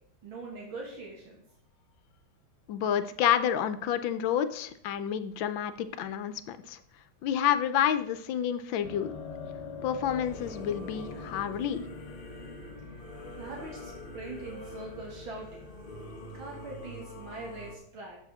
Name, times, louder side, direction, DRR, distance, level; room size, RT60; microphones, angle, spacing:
voice 1, 0.2-1.4 13.4-15.7 16.3-18.2, right 2 dB, 80° right, -2 dB, 2.7 m, -42 dB
voice 2, 2.7-6.8 7.2-9.1 9.8-11.9, left 9 dB, 75° left, 11 dB, 1.4 m, -29 dB
sound 1, 8.8-17.2, left 4 dB, 55° left, 1.6 m, -46 dB
Singing / Musical instrument, 10.0-17.7, left 1 dB, 40° left, 0.8 m, -44 dB
14.5 x 6.1 x 3.5 m, 0.69 s
omnidirectional pair, 2.2 m